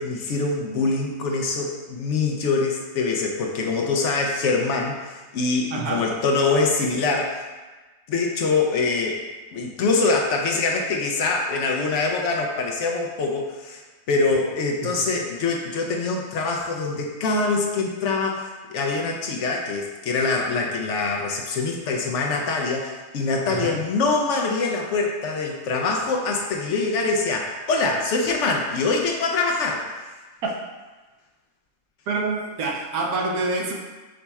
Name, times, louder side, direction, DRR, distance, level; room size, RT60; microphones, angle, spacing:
voice 1, 0.0-7.5 8.1-9.2 9.5-13.8 14.1-30.1, left 3 dB, 70° left, 1 dB, 0.7 m, -24 dB
voice 2, 5.7-6.1 14.8-14.9 23.5-23.8 30.4-30.6 32.1-33.7, right 3 dB, 75° right, 0 dB, 1.1 m, -26 dB
5.0 x 4.1 x 2.3 m, 1.2 s
omnidirectional pair, 1.6 m